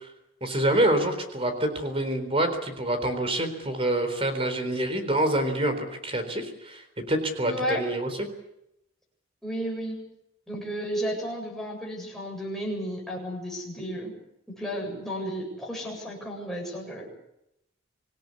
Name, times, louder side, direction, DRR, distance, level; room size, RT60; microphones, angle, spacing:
voice 1, 0.4-8.1, right 1 dB, 30° right, 8 dB, 4.0 m, -26 dB
voice 2, 7.4-7.8 9.4-10.0 10.5-14.1 14.5-17.1, equal, ahead, -2 dB, 7.9 m, -33 dB
26.0 x 17.0 x 8.5 m, 0.82 s
head